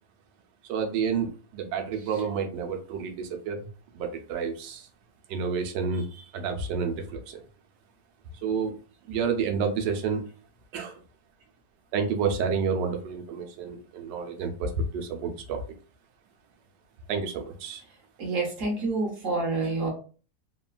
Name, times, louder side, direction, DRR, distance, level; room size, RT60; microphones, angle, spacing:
voice 1, 0.7-4.9 5.3-7.4 8.4-8.8 9.1-10.2 10.7-11.0 11.9-15.6 17.1-17.8, right 5 dB, 80° right, 5 dB, 1.2 m, -30 dB
voice 2, 18.2-19.9, right 3 dB, 55° right, 0 dB, 1.0 m, -28 dB
3.1 x 2.2 x 2.2 m, 0.38 s
omnidirectional pair, 1.9 m